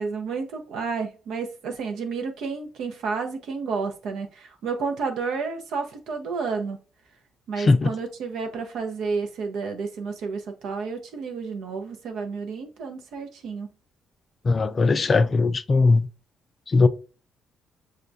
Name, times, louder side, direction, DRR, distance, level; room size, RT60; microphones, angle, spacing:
voice 1, 0.0-6.8 7.5-13.7, right 5 dB, 80° right, 0.8 m, -31 dB
voice 2, 7.6-7.9 14.4-16.1 16.7-16.9, left 3 dB, 35° left, 0.3 m, -19 dB
6.4 x 2.2 x 2.6 m
cardioid pair, 90°, 0 cm